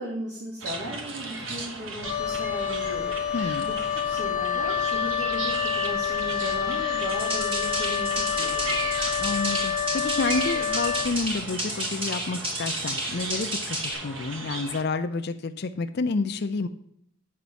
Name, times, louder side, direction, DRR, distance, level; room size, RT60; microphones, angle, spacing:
voice 1, 0.0-3.2 3.7-9.1, right 1 dB, 60° right, -5 dB, 2.5 m, -37 dB
sound 1, 0.6-14.8, right 3 dB, 80° right, 1.3 m, -36 dB
Wind instrument woodwind instrument, 2.0-11.1, left 8 dB, 20° left, 1.5 m, -28 dB
voice 2, 3.3-3.7 9.2-16.7, left 3 dB, 55° left, 9 dB, 0.5 m, -29 dB
sound 2, 7.1-13.9, right 1 dB, 25° right, 3.6 m, -32 dB
8.5 x 5.2 x 6.8 m, 0.69 s
head